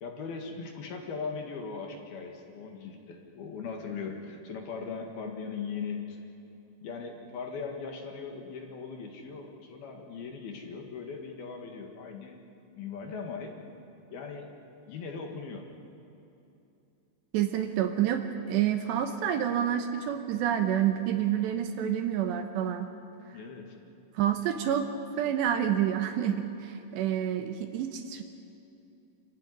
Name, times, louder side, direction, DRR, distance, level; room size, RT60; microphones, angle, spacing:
voice 1, 0.0-6.2 6.8-12.4 12.8-13.5 14.1-14.5 14.9-15.6 23.3-23.8, left 5 dB, 60° left, 3 dB, 3.3 m, -39 dB
voice 2, 17.3-22.9 24.2-24.9 25.2-28.2, right 10 dB, 75° right, 7 dB, 2.9 m, -28 dB
28.0 x 15.5 x 10.0 m, 2.8 s
omnidirectional pair, 5.6 m